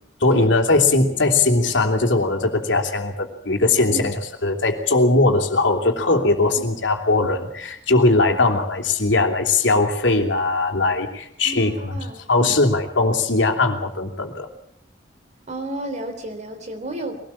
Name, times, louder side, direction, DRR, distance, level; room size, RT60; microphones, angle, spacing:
voice 1, 0.2-4.1 4.4-11.9 12.3-14.5, left 2 dB, 80° left, 4 dB, 3.1 m, -19 dB
voice 2, 11.4-12.6 15.5-17.2, right 2 dB, 40° right, 6 dB, 3.4 m, -32 dB
22.5 x 18.5 x 7.3 m, 0.69 s
head